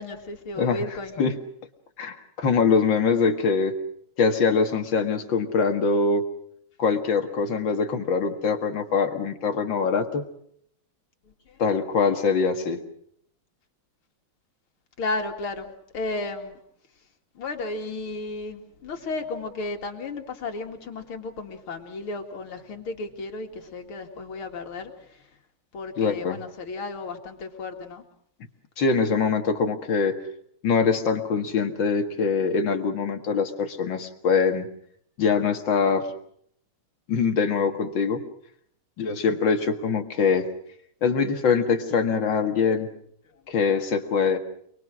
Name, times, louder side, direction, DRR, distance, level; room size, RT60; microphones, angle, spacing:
voice 1, 0.0-1.2 11.2-11.6 15.0-16.6 17.3-25.3 25.7-28.0 43.3-43.6, left 3 dB, 80° left, 3 dB, 3.0 m, -34 dB
voice 2, 2.0-3.8 4.2-6.3 6.8-10.2 11.6-12.8 26.0-26.4 28.8-30.2 30.6-34.7 35.2-36.1 37.1-38.2 39.0-40.5 41.0-42.9 43.5-44.4, left 5 dB, 65° left, 5 dB, 2.5 m, -23 dB
28.5 x 21.0 x 6.2 m, 0.67 s
omnidirectional pair, 2.3 m